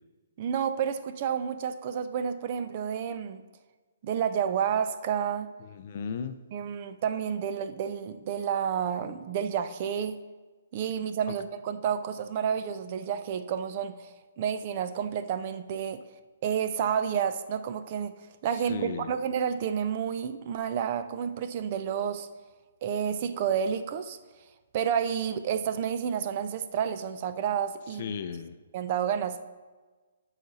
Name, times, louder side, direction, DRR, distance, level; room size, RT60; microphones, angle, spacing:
voice 1, 0.4-3.4 4.0-5.5 6.5-10.2 10.7-16.0 16.4-18.1 18.4-22.3 22.8-24.2 24.7-28.1 28.7-29.5, right 8 dB, 35° right, 10 dB, 0.5 m, -30 dB
voice 2, 5.6-6.4 11.3-11.4 18.5-19.2 28.0-28.6, left 6 dB, 40° left, 10 dB, 0.5 m, -36 dB
12.0 x 5.0 x 4.1 m, 1.3 s
hypercardioid pair, 165°, 0 cm